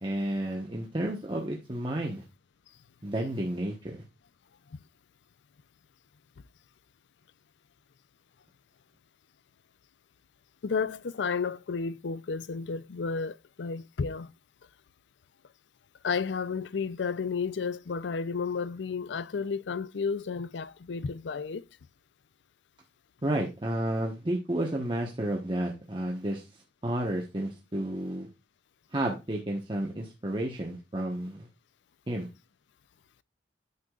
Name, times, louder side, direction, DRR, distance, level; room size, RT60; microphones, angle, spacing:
voice 1, 0.0-2.2 3.0-4.0 23.2-26.4 26.8-28.3 28.9-31.5 32.1-32.3, right 1 dB, 30° right, 1.2 m, -31 dB
voice 2, 10.6-14.3 16.0-21.6, left 5 dB, 90° left, 0.5 m, -32 dB
9.6 x 6.7 x 2.4 m
head